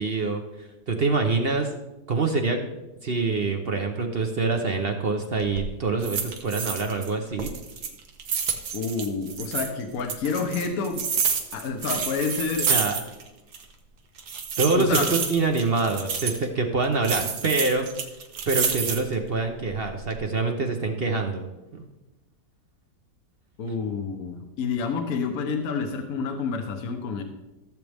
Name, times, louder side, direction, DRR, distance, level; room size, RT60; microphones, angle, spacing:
voice 1, 0.0-1.7 2.1-2.6 3.0-7.5 12.7-13.0 14.6-17.9 18.5-21.5 21.7-21.9, right 3 dB, 45° right, 4 dB, 0.9 m, -25 dB
sound 1, 5.3-5.7 6.0-7.1 7.4-9.7 10.1-13.3 13.5-13.6 14.2-16.4 17.0-19.2 19.7-20.2, right 6 dB, 70° right, 1.6 m, -29 dB
voice 2, 8.7-11.0 11.5-12.7 14.7-15.1 23.6-27.2, left 5 dB, 60° left, 5 dB, 1.3 m, -28 dB
15.5 x 7.6 x 3.5 m, 1.0 s
omnidirectional pair, 1.8 m